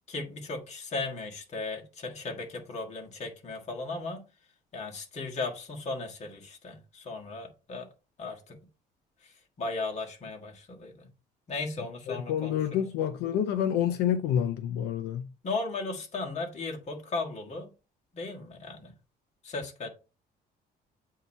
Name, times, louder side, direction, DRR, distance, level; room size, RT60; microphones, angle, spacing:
voice 1, 0.1-4.2 4.7-7.9 8.2-8.6 9.2-11.1 11.5-12.8 15.4-17.7 18.1-18.9 19.4-19.9, left 3 dB, 40° left, 1.6 m, -36 dB
voice 2, 12.1-15.3, left 9 dB, 80° left, 0.5 m, -28 dB
8.1 x 2.8 x 4.4 m
cardioid pair, 110°, 17 cm